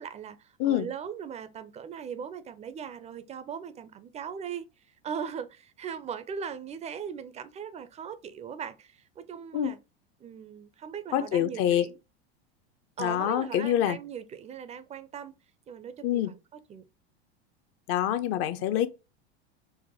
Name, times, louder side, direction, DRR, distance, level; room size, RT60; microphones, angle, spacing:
voice 1, 0.0-4.7 5.0-9.8 10.2-12.0 13.0-15.3 15.7-16.9, right 7 dB, 20° right, 0.4 m, -39 dB
voice 2, 11.1-11.9 13.0-14.0 16.0-16.3 17.9-18.9, left 11 dB, 45° left, 0.5 m, -26 dB
4.6 x 2.1 x 2.7 m
hypercardioid pair, 95°, 32 cm